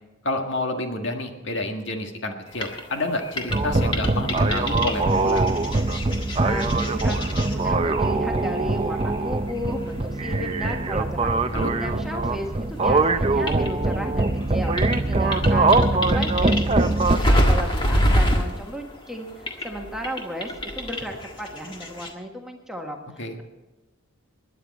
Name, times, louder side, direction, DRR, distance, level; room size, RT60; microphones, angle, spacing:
voice 1, 0.2-5.4 11.5-11.7 23.2-23.4, left 1 dB, 65° left, 3 dB, 1.7 m, -29 dB
sound 1, 2.5-12.5 12.8-22.1, equal, 25° left, 1.7 m, -28 dB
sound 2, 3.5-17.2, right 2 dB, 25° right, 0.5 m, -22 dB
voice 2, 6.4-23.4, equal, ahead, 1 dB, 1.5 m, -34 dB
21.0 x 10.0 x 4.2 m, 1.1 s
head